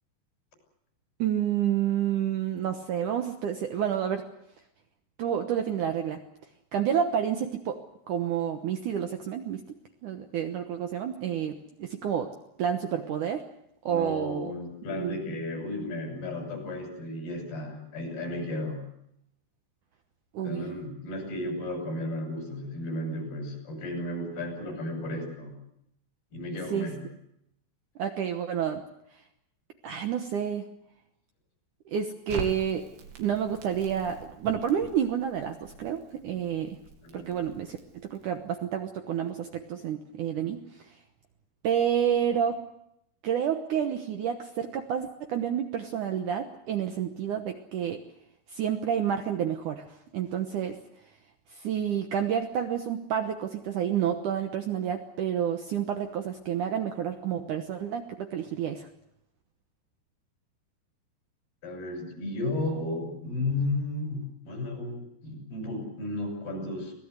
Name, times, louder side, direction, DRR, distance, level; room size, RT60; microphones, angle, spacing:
voice 1, 1.2-4.2 5.2-6.2 6.7-7.8 8.1-9.6 10.0-12.3 12.6-13.4 13.9-14.5 14.9-15.3 20.3-20.7 26.7-26.9 28.0-28.8 29.8-30.6 31.9-32.9 33.2-36.8 37.1-40.9 41.6-42.6 43.2-48.0 48.5-49.9 50.1-50.8 51.5-58.9, right 9 dB, 65° right, 6 dB, 2.1 m, -29 dB
voice 2, 13.9-18.9 20.4-25.6 26.3-27.0 37.0-37.4 61.6-66.9, left 2 dB, 65° left, 4 dB, 8.5 m, -34 dB
Crackle, 32.3-38.4, right 5 dB, 85° right, 4.7 m, -44 dB
24.5 x 18.0 x 8.2 m, 0.78 s
omnidirectional pair, 4.9 m